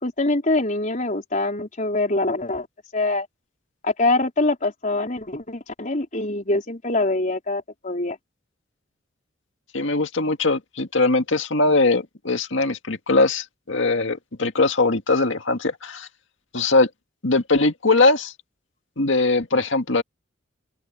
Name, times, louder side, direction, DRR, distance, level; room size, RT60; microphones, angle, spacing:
voice 1, 0.0-2.7 2.9-3.3 3.8-8.2, left 2 dB, 40° left, 4.2 m, -24 dB
voice 2, 9.7-16.1 16.5-16.9 17.2-18.3 19.0-20.0, left 3 dB, 65° left, 2.0 m, -21 dB
open air
head